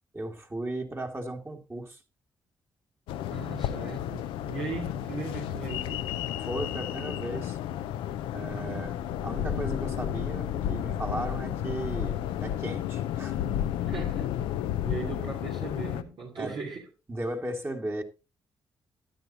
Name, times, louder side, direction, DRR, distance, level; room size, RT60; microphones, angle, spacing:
voice 1, 0.1-2.0 6.4-7.6 8.3-9.0 9.2-13.5 16.4-16.6 17.1-18.0, right 1 dB, 25° right, 2.4 m, -36 dB
sound 1, 3.1-16.0, left 10 dB, 80° left, 0.7 m, -32 dB
voice 2, 3.3-6.1 8.5-9.0 13.9-14.3 14.8-16.9, right 4 dB, 60° right, 3.0 m, -38 dB
12.5 x 11.0 x 2.9 m
hypercardioid pair, 45°, 9 cm